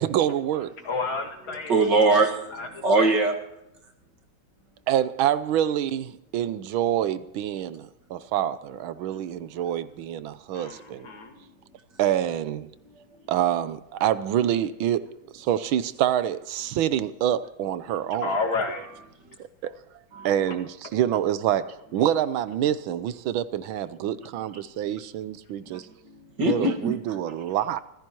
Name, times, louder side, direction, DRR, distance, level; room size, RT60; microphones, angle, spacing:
voice 1, 0.0-0.7 4.9-11.1 12.0-12.7 13.3-15.1 15.3-18.4 19.6-19.7 20.2-25.9 26.4-27.8, right 11 dB, 85° right, 1.6 m, -26 dB
voice 2, 0.8-1.7 2.6-2.7 3.0-3.2 10.5-11.4 18.2-18.9, left 3 dB, 85° left, 3.0 m, -30 dB
voice 3, 1.7-3.4 19.3-19.4 20.1-20.3 25.7-27.2, right 3 dB, 60° right, 2.5 m, -23 dB
25.5 x 15.5 x 3.0 m
omnidirectional pair, 2.2 m